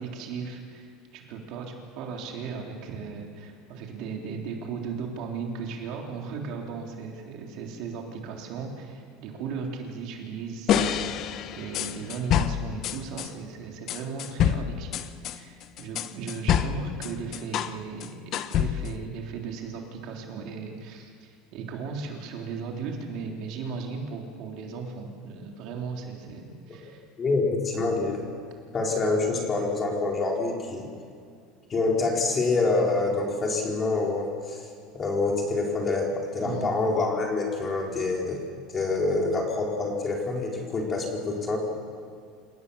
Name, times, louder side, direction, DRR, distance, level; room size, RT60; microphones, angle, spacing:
voice 1, 0.0-18.2 18.5-27.0 36.4-36.7, right 5 dB, 50° right, 1 dB, 3.5 m, -36 dB
sound 1, 10.7-13.3 13.9-17.8 18.0-19.0, left 10 dB, 40° left, 0.8 m, -27 dB
voice 2, 27.2-28.2 28.7-30.9 31.7-34.7 34.9-38.4 38.7-41.6, left 3 dB, 20° left, 0 dB, 3.7 m, -26 dB
28.0 x 18.0 x 7.0 m, 2.3 s
cardioid pair, 165°, 0 cm